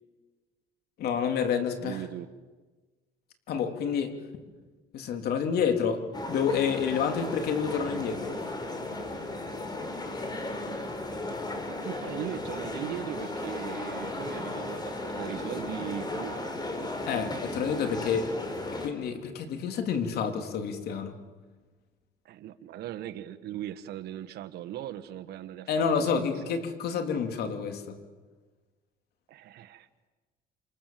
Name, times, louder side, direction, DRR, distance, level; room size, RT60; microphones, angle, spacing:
voice 1, 1.0-2.0 3.5-4.2 4.9-8.3 17.1-18.3 18.8-21.2 25.7-28.0, left 6 dB, 70° left, 5 dB, 3.5 m, -29 dB
voice 2, 1.8-2.3 11.8-16.5 22.2-26.3 29.3-29.9, right 12 dB, 70° right, 9 dB, 1.5 m, -39 dB
sound 1, 6.1-18.9, left 2 dB, 25° left, 4.4 m, -35 dB
28.0 x 27.5 x 7.7 m, 1.3 s
cardioid pair, 110°, 17 cm